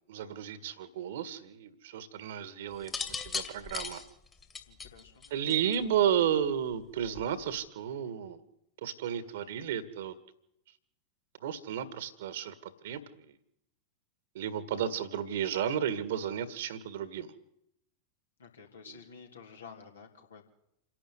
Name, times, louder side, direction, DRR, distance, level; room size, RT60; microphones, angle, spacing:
voice 1, 0.0-4.0 5.3-8.4 8.8-10.2 11.4-13.3 14.4-17.3, right 9 dB, 55° right, 15 dB, 1.8 m, -33 dB
sound 1, 2.8-5.9 7.0-7.4, left 5 dB, 20° left, 2.2 m, -38 dB
voice 2, 4.7-5.5 18.4-20.5, left 6 dB, 70° left, 2 dB, 3.4 m, -51 dB
27.5 x 11.5 x 9.7 m, 0.81 s
figure-of-eight pair, 90°, 0 cm